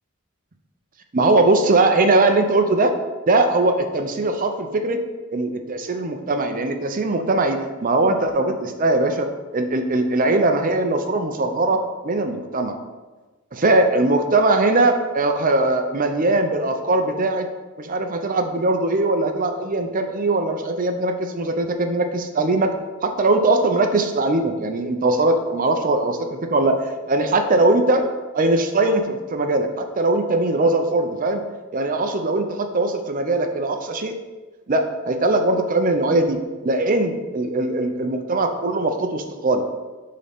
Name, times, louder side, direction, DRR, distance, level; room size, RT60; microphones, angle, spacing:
voice 1, 1.1-2.9 3.3-5.0 5.3-12.8 13.5-17.5 17.8-22.7 23.0-26.8 27.1-28.1 28.3-31.4 31.7-34.1 34.7-39.7, right 2 dB, 40° right, 6 dB, 0.6 m, -20 dB
11.0 x 3.8 x 3.5 m, 1.3 s
head